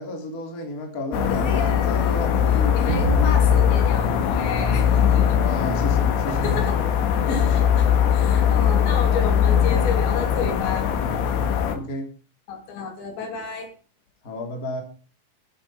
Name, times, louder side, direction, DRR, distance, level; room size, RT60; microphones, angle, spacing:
voice 1, 0.0-3.4 5.3-6.7 7.1-7.6 11.7-12.1 14.2-14.8, left 1 dB, 20° left, 3 dB, 2.8 m, -32 dB
sound 1, 1.1-11.8, left 8 dB, 85° left, 4.5 m, -20 dB
voice 2, 1.3-2.2 2.7-5.4 6.4-6.9 7.3-7.4 8.1-10.9 12.5-13.7, left 5 dB, 65° left, 5 dB, 4.9 m, -31 dB
sound 2, 2.9-5.6, right 8 dB, 85° right, 3.5 m, -33 dB
14.0 x 10.5 x 5.5 m, 0.37 s
omnidirectional pair, 5.6 m